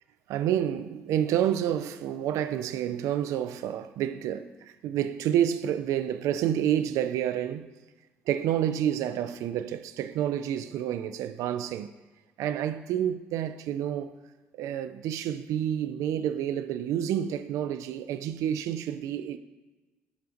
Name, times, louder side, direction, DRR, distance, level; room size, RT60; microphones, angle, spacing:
voice 1, 0.3-7.7 8.3-11.9 12.4-14.1 14.5-19.4, right 10 dB, 65° right, 0.4 m, -29 dB
12.5 x 5.6 x 2.6 m
figure-of-eight pair, 45°, 6 cm